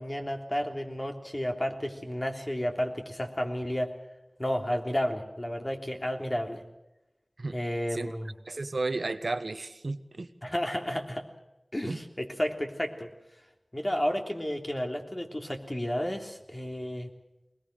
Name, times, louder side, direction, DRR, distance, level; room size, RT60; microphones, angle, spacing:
voice 1, 0.0-3.9 4.4-6.6 7.5-8.3 10.4-11.2 11.7-13.1 13.7-17.1, equal, 30° left, 3 dB, 3.3 m, -32 dB
voice 2, 8.5-10.3 11.9-12.0, right 3 dB, 85° right, 10 dB, 1.2 m, -33 dB
22.0 x 20.5 x 6.6 m, 0.98 s
wide cardioid pair, 45°, 0 cm